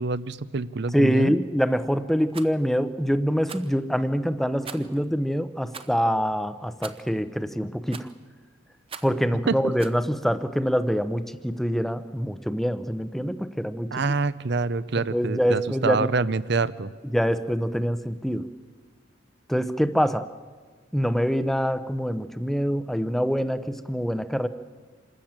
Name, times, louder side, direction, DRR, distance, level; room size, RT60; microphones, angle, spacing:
voice 1, 0.0-1.3 9.5-9.6 13.9-16.9, right 3 dB, 60° right, 17 dB, 0.7 m, -26 dB
voice 2, 0.9-8.1 9.0-14.0 15.0-16.1 17.0-18.5 19.5-20.3 20.9-24.5, equal, ahead, 12 dB, 0.7 m, -25 dB
Rattle, 2.3-2.5 3.4-3.7 4.6-5.0 5.7-6.0 6.8-7.1 7.9-8.2 8.9-9.2 9.8-10.0, right 6 dB, 30° right, 0.8 m, -41 dB
26.0 x 13.5 x 8.8 m, 1.5 s
head